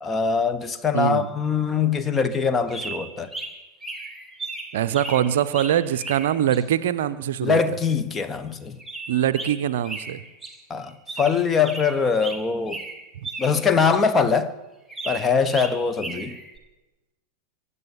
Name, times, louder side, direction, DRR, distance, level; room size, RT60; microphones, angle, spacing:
voice 1, 0.0-3.3 7.4-8.8 10.7-10.9 11.2-12.8 13.4-14.5 15.0-16.4, left 5 dB, 20° left, 1.3 m, -22 dB
voice 2, 0.9-1.3 4.7-7.6 9.1-10.2 13.2-13.3, right 10 dB, 55° right, 0.6 m, -23 dB
sound 1, 2.7-6.6 8.8-10.6 10.8-13.6 13.9-14.0 14.9-16.6, right 3 dB, 5° right, 2.6 m, -36 dB
23.5 x 8.3 x 7.3 m
figure-of-eight pair, 90°, 0 cm